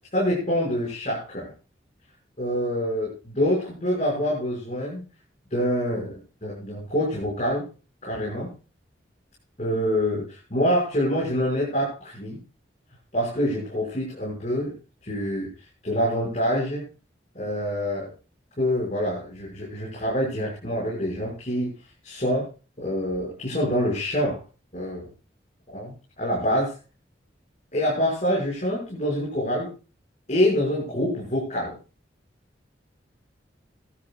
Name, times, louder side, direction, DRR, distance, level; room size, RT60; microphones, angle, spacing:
voice 1, 0.1-1.5 2.4-5.0 5.5-7.7 8.0-8.5 9.6-12.4 13.1-14.7 15.0-15.5 15.8-16.9 17.3-18.1 18.6-21.7 22.0-22.5 22.8-24.4 24.7-25.1 25.7-26.7 27.7-29.7 30.3-31.8, equal, 40° left, -5 dB, 6.1 m, -26 dB
19.5 x 12.5 x 2.4 m, 0.33 s
head